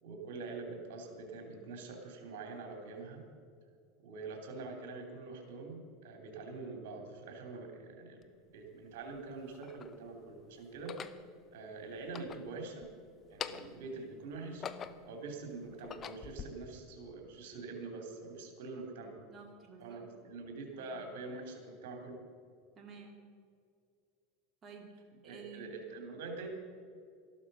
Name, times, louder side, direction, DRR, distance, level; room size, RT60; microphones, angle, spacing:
voice 1, 0.0-3.2 4.0-8.3 8.5-11.0 11.5-12.9 13.3-14.6 15.1-19.2 19.8-22.2 25.2-26.5, right 3 dB, 75° right, 3 dB, 3.3 m, -45 dB
sound 1, 8.2-8.3 9.1-10.0 10.7-11.2 12.0-12.9 13.2-13.8 14.3-15.2 15.7-16.5, left 7 dB, 30° left, 0.8 m, -44 dB
voice 2, 19.0-20.1 20.8-20.9 22.7-23.3 24.6-25.7, right 5 dB, 30° right, 1 dB, 2.2 m, -52 dB
14.0 x 12.0 x 5.5 m, 2.3 s
supercardioid pair, 115°, 0 cm